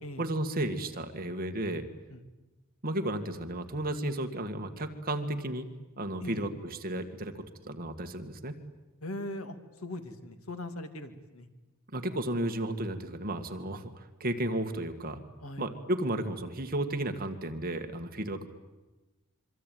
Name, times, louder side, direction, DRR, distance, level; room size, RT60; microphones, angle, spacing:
voice 1, 0.2-1.9 2.8-5.7 6.0-8.6 11.9-15.2 15.6-18.5, right 1 dB, 40° right, 6 dB, 2.0 m, -33 dB
voice 2, 6.2-6.5 9.0-11.5 15.4-15.7, left 1 dB, 70° left, 8 dB, 2.5 m, -40 dB
26.0 x 24.0 x 9.4 m, 1.1 s
head